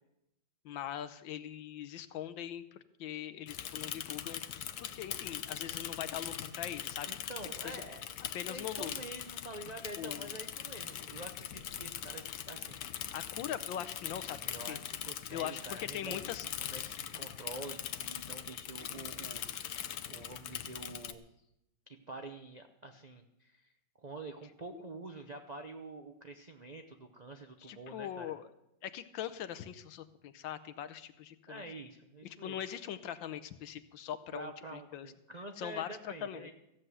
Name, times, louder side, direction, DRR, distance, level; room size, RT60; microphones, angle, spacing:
voice 1, 0.6-4.4 4.8-7.1 7.6-7.8 8.3-8.9 10.0-10.4 13.1-14.4 14.7-14.8 15.3-16.5 24.7-24.9 27.6-28.5 28.8-31.6 32.4-35.1 35.6-36.5, left 10 dB, 80° left, 12 dB, 1.6 m, -41 dB
Bicycle / Mechanisms, 3.5-21.1, left 10 dB, 65° left, 1.1 m, -41 dB
voice 2, 7.1-8.1 8.5-13.1 14.4-16.3 16.6-19.8 20.1-21.2 21.9-23.7 24.0-28.3 31.5-32.6 34.3-36.5, right 2 dB, 55° right, 4 dB, 0.4 m, -47 dB
14.5 x 7.8 x 8.1 m, 0.84 s
omnidirectional pair, 2.1 m